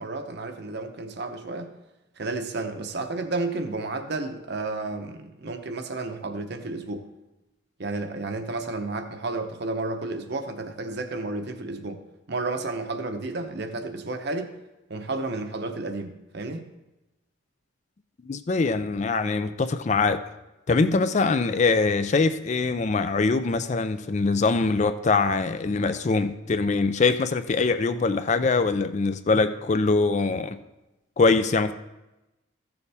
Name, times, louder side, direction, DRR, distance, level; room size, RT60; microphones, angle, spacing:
voice 1, 0.0-1.7 2.2-7.1 7.8-12.0 12.3-14.6 14.9-16.6, right 3 dB, 50° right, 7 dB, 0.8 m, -32 dB
voice 2, 18.3-20.2 20.7-30.6 31.2-31.7, left 4 dB, 35° left, 11 dB, 0.4 m, -23 dB
14.0 x 7.0 x 3.4 m, 0.99 s
head